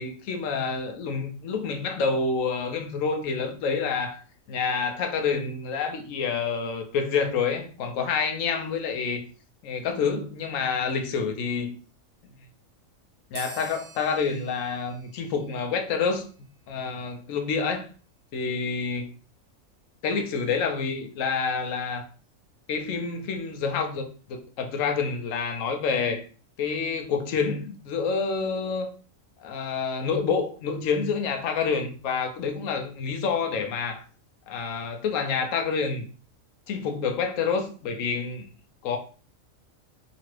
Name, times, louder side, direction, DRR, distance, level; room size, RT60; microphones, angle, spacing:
voice 1, 0.0-4.2 4.5-9.3 9.6-11.8 13.3-16.3 16.7-17.8 18.3-19.1 20.0-22.0 22.7-26.2 26.6-28.9 29.4-34.0 34.5-36.1 36.7-38.5 38.8-39.0, left 5 dB, 75° left, 0.9 m, -28 dB
sound 1, 13.3-16.4, right 4 dB, 85° right, 1.0 m, -46 dB
2.9 x 2.5 x 3.0 m
omnidirectional pair, 1.4 m